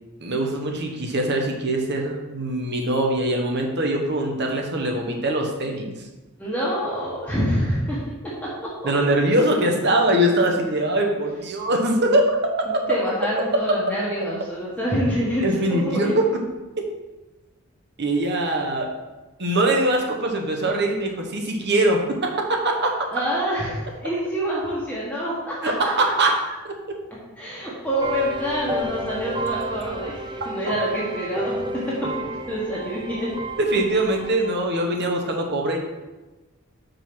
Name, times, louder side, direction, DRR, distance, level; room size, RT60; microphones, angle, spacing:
voice 1, 0.2-5.9 8.8-12.4 12.7-12.8 15.4-16.2 18.0-18.9 19.4-22.9 25.6-26.3 33.6-35.8, right 1 dB, 50° right, 2 dB, 1.0 m, -22 dB
voice 2, 6.4-8.0 8.4-8.5 12.7-16.1 18.4-18.5 23.1-25.6 26.5-26.6 27.4-31.6 31.9-33.3, equal, 5° left, -7 dB, 1.2 m, -26 dB
sound 1, 28.0-34.5, right 1 dB, 20° right, 0.4 m, -31 dB
5.3 x 4.4 x 5.9 m, 1.1 s
head